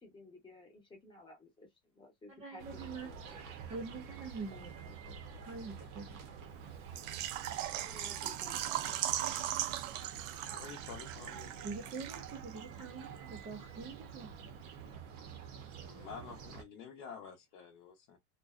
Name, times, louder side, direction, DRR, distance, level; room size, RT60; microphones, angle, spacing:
voice 1, 0.0-3.4 7.9-9.3, left 2 dB, 15° left, 0.9 m, -56 dB
voice 2, 2.4-3.1 3.7-6.2 11.6-14.3, right 4 dB, 15° right, 0.4 m, -45 dB
sound 1, 2.6-16.6, right 6 dB, 55° right, 0.7 m, -48 dB
Water / Liquid, 7.0-12.6 12.8-12.9 13.4-13.5, right 12 dB, 85° right, 0.5 m, -38 dB
voice 3, 10.5-11.6 15.8-18.2, left 6 dB, 50° left, 0.8 m, -49 dB
2.6 x 2.1 x 2.3 m
supercardioid pair, 155°, 38 cm